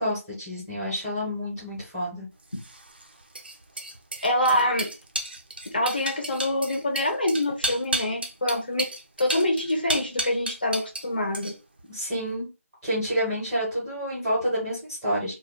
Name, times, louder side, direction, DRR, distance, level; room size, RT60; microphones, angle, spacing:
voice 1, 0.0-2.3 11.9-12.5 12.8-15.3, equal, 5° right, -9 dB, 0.7 m, -28 dB
sound 1, 2.5-11.1 11.3-11.8, right 2 dB, 40° right, 0.4 m, -32 dB
voice 2, 4.2-4.9 5.7-8.8 9.2-11.5, left 1 dB, 35° left, 3 dB, 0.5 m, -25 dB
2.7 x 2.2 x 3.8 m, 0.30 s
figure-of-eight pair, 170°, 8 cm